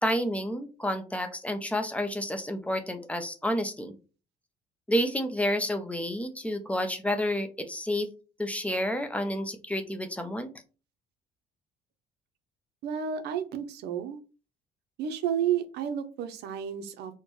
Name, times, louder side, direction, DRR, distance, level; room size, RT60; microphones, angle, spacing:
voice 1, 0.0-4.0 4.9-8.1 8.4-10.5, equal, 10° left, 7 dB, 0.5 m, -30 dB
voice 2, 12.8-14.2 15.0-17.2, right 8 dB, 75° right, 9 dB, 0.6 m, -31 dB
4.2 x 2.1 x 3.1 m, 0.34 s
cardioid pair, 110°, 17 cm